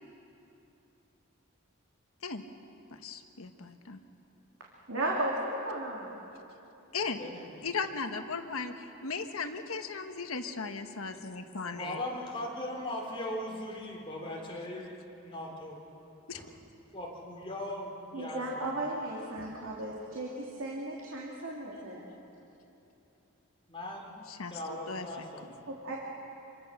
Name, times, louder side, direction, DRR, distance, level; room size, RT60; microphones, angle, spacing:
voice 1, 2.9-4.0 6.9-7.2 7.6-12.0 16.3-16.4 24.4-25.0, left 4 dB, 80° left, 7 dB, 1.4 m, -37 dB
voice 2, 4.9-6.2 18.1-22.0 25.7-26.0, right 1 dB, 70° right, -3 dB, 2.8 m, -35 dB
voice 3, 7.0-7.9 11.6-15.8 16.3-16.5 16.9-18.7 19.4-19.5 23.7-24.1 24.5-25.6, left 1 dB, 25° left, -2 dB, 3.9 m, -39 dB
27.0 x 24.0 x 6.7 m, 2.9 s
head